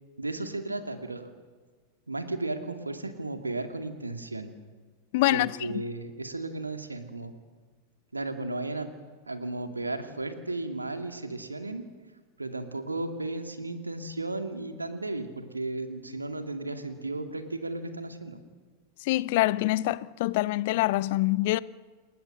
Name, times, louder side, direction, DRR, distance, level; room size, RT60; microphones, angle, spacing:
voice 1, 0.2-1.3 2.1-4.5 5.3-7.3 8.1-8.9 9.3-11.9 12.4-18.4, right 2 dB, 80° right, 2.1 m, -34 dB
voice 2, 5.1-5.6 19.0-21.6, left 18 dB, 50° left, 0.6 m, -25 dB
28.5 x 19.0 x 6.6 m
figure-of-eight pair, 90°, 0 cm